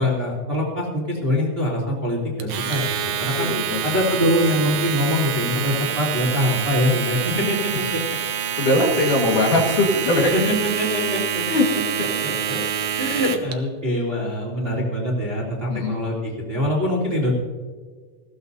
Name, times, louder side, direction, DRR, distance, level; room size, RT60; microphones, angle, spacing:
voice 1, 0.0-2.8 3.2-3.5 3.8-8.0 10.3-11.4 12.2-12.6 13.0-17.3, left 1 dB, 15° right, -3 dB, 2.6 m, -23 dB
Domestic sounds home sounds, 2.4-13.5, right 8 dB, 85° right, 1.6 m, -26 dB
voice 2, 3.4-3.8 8.6-10.3 11.5-11.7 15.7-15.9, left 2 dB, 60° left, -1 dB, 3.0 m, -20 dB
20.5 x 15.5 x 2.7 m, 1.6 s
omnidirectional pair, 4.6 m